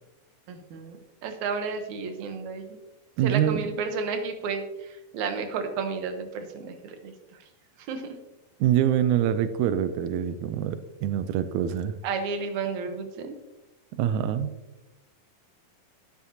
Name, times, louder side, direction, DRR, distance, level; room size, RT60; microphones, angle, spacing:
voice 1, 0.5-2.8 3.2-7.1 7.8-8.2 12.0-13.4, right 5 dB, 65° right, 6 dB, 2.2 m, -32 dB
voice 2, 3.2-3.6 8.6-11.9 14.0-14.5, right 10 dB, 90° right, 12 dB, 1.7 m, -25 dB
12.0 x 9.5 x 2.8 m, 1.0 s
omnidirectional pair, 4.0 m